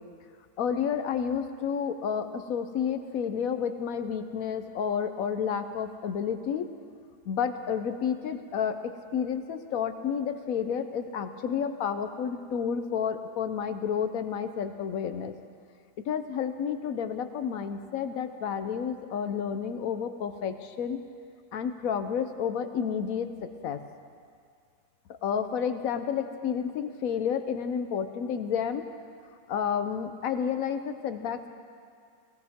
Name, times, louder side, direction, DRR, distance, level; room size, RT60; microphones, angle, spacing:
voice 1, 0.6-6.7 7.3-15.3 16.0-21.0 21.5-23.8 25.2-28.9 29.5-31.5, left 7 dB, 60° left, 9 dB, 1.0 m, -30 dB
17.5 x 17.5 x 3.6 m, 2.2 s
omnidirectional pair, 1.9 m